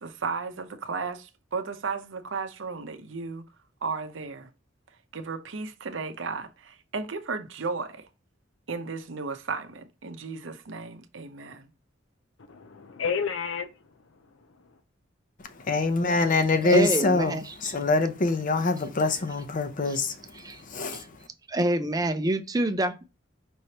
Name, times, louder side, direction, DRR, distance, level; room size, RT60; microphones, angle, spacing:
voice 1, 0.0-3.5 3.8-4.5 5.1-8.1 8.7-11.7, right 4 dB, 75° right, 0.7 m, -34 dB
voice 2, 12.5-14.8, left 6 dB, 90° left, 0.6 m, -33 dB
voice 3, 15.7-21.2, left 3 dB, 45° left, 0.7 m, -25 dB
voice 4, 16.6-17.7 20.4-20.6 20.9-21.0 21.5-23.0, right 1 dB, 20° right, 0.5 m, -27 dB
5.3 x 3.2 x 2.8 m
head